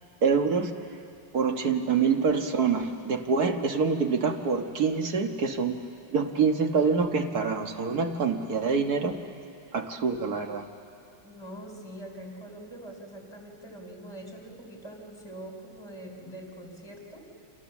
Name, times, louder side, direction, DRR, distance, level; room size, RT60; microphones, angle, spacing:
voice 1, 0.2-0.7 1.3-5.8 6.1-9.2 9.7-10.7, right 5 dB, 50° right, 5 dB, 1.7 m, -26 dB
voice 2, 11.2-17.3, right 1 dB, 10° left, 1 dB, 4.1 m, -43 dB
29.5 x 27.0 x 7.2 m, 2.6 s
omnidirectional pair, 2.3 m